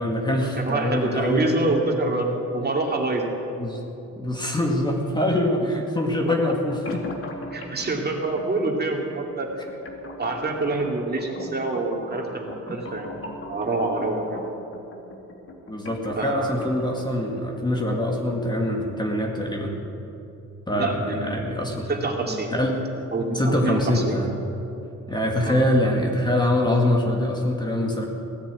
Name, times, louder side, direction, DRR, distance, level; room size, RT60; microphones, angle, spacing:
voice 1, 0.0-1.5 3.6-3.8 4.2-7.1 12.7-12.8 15.7-19.7 20.7-21.9 22.5-22.8 23.3-24.3 25.1-28.0, left 1 dB, 15° left, 0 dB, 2.1 m, -24 dB
voice 2, 0.5-3.2 6.3-6.4 7.5-9.5 10.2-14.5 16.2-16.6 20.7-21.4 21.9-22.5 23.1-24.2 25.4-25.6, right 2 dB, 30° right, 0 dB, 2.6 m, -26 dB
sound 1, 6.9-18.9, left 1 dB, 45° left, 2.4 m, -41 dB
17.0 x 10.0 x 8.4 m, 2.9 s
cardioid pair, 95°, 31 cm